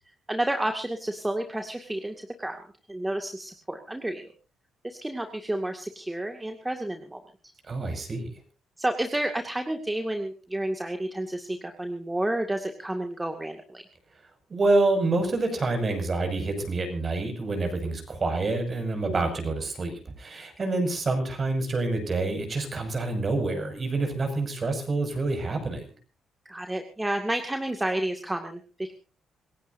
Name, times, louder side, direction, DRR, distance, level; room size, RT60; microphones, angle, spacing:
voice 1, 0.3-2.6 2.9-4.3 4.8-7.2 8.8-13.8 19.0-19.2 26.5-28.9, right 1 dB, 10° right, 4 dB, 2.2 m, -30 dB
voice 2, 7.7-8.3 14.5-25.9, right 2 dB, 40° right, 6 dB, 6.6 m, -27 dB
27.0 x 16.0 x 2.7 m, 0.35 s
cardioid pair, 90°, 0 cm